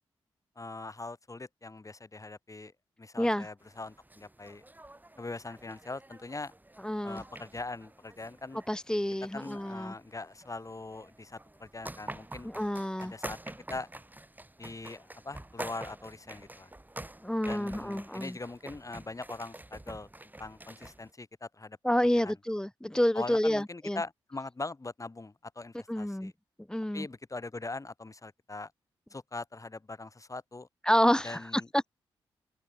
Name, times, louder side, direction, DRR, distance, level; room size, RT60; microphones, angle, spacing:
voice 1, 0.6-2.7 3.0-4.6 5.2-6.5 7.0-8.6 9.3-12.5 13.0-13.4 13.7-13.9 14.6-16.7 17.4-20.1 20.4-21.8 22.1-22.3 23.1-26.3 26.9-28.7 29.1-30.7 31.2-31.9, left 3 dB, 30° left, 2.7 m, -41 dB
voice 2, 3.2-3.5 6.8-7.2 8.7-9.9 12.4-13.1 17.2-18.4 21.8-24.0 25.9-26.3 26.7-27.1 30.8-31.9, equal, 5° left, 0.7 m, -29 dB
sound 1, 3.6-21.1, right 1 dB, 15° right, 5.5 m, -47 dB
open air
supercardioid pair, 45°, 11 cm